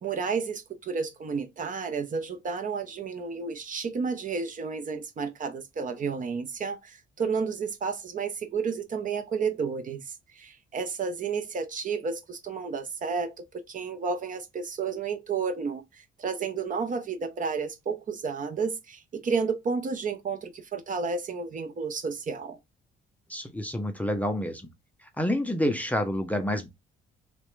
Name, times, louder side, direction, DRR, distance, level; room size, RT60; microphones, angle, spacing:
voice 1, 0.0-22.6, right 5 dB, 40° right, 0.5 m, -31 dB
voice 2, 23.3-24.7 25.2-26.7, left 1 dB, 5° left, 0.5 m, -28 dB
2.4 x 2.1 x 3.0 m
cardioid pair, 90°, 20 cm